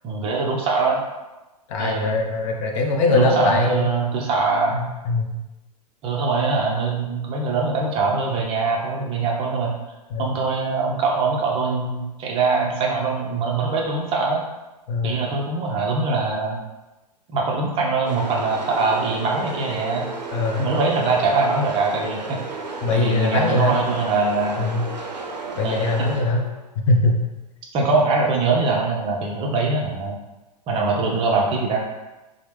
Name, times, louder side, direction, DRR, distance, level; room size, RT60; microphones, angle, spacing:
voice 1, 0.0-1.0 1.8-2.1 3.1-4.8 6.0-9.7 10.2-14.4 15.0-16.6 17.3-20.1 20.6-22.4 22.9-24.7 25.6-26.1 27.7-30.2 30.7-31.8, right 3 dB, 25° right, -1 dB, 0.5 m, -22 dB
voice 2, 1.7-3.9 4.7-5.4 10.1-10.3 14.9-15.3 20.3-20.7 22.8-23.8 24.6-24.8 25.6-26.5 26.9-27.1, left 2 dB, 50° left, 1 dB, 0.5 m, -21 dB
sound 1, 18.0-26.7, right 3 dB, 85° right, 0.5 m, -33 dB
3.0 x 2.0 x 3.2 m, 1.1 s
figure-of-eight pair, 105°, 21 cm